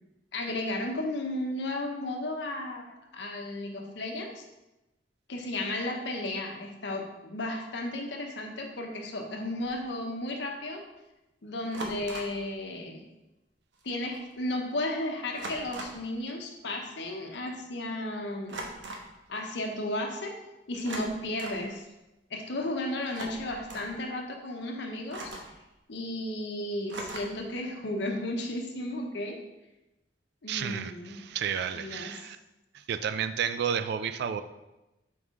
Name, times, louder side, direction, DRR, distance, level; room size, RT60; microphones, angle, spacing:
voice 1, 0.3-4.4 5.3-10.8 11.4-13.1 13.8-18.6 19.3-20.4 20.7-21.9 22.3-25.3 25.9-29.4 30.4-31.2 31.7-32.1, left 1 dB, 70° left, 2 dB, 0.8 m, -34 dB
sound 1, 9.6-9.8 11.7-12.4 13.8-13.9 14.1-14.4 15.3-16.1 18.5-19.1 20.7-21.7 23.0-23.9 25.1-25.6 26.9-27.5, right 1 dB, 85° right, 0.9 m, -40 dB
voice 2, 30.5-32.4 32.7-34.4, right 7 dB, 65° right, 11 dB, 0.3 m, -31 dB
5.5 x 4.6 x 3.6 m, 0.99 s
head